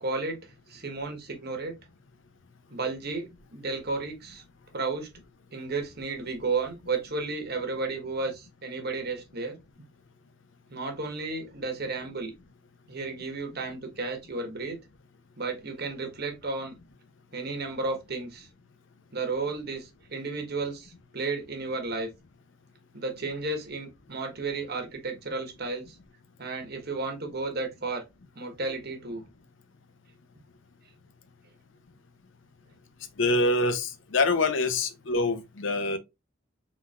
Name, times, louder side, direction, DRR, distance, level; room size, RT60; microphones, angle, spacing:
voice 1, 0.0-1.8 2.7-4.4 4.7-5.1 5.5-9.6 10.7-12.3 12.9-14.8 15.4-16.7 17.3-18.5 19.1-22.1 22.9-25.9 26.4-28.0 28.3-29.2, right 3 dB, 55° right, 1.3 m, -33 dB
voice 2, 33.2-36.0, left 2 dB, 70° left, 0.7 m, -25 dB
4.3 x 4.0 x 2.4 m
head